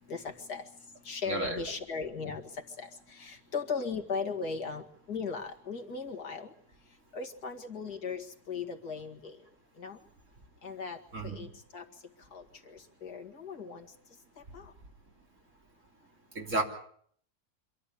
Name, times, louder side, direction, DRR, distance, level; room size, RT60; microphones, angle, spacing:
voice 1, 0.1-0.7 1.0-6.5 7.1-9.4 9.8-10.0 10.6-11.0 11.2-11.5 11.7-11.8 12.3-13.9 14.5-14.7, left 5 dB, 75° left, 3 dB, 2.5 m, -38 dB
voice 2, 1.3-1.6 11.1-11.4 16.4-16.6, right 2 dB, 50° right, 1 dB, 3.8 m, -31 dB
26.0 x 13.0 x 9.9 m, 0.62 s
omnidirectional pair, 1.7 m